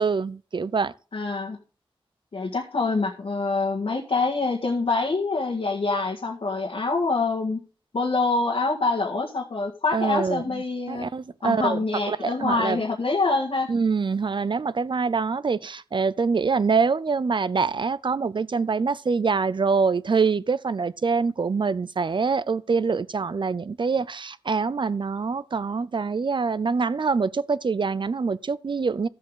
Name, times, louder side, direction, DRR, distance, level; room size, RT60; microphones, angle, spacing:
voice 1, 0.0-0.9 9.9-10.6 10.9-11.8 12.1-12.8 13.7-29.1, right 5 dB, 55° right, 0.6 m, -25 dB
voice 2, 1.1-1.6 2.3-7.6 7.9-11.1 11.4-13.7, left 3 dB, 80° left, 1.8 m, -25 dB
13.5 x 7.7 x 3.8 m
wide cardioid pair, 60°, 10 cm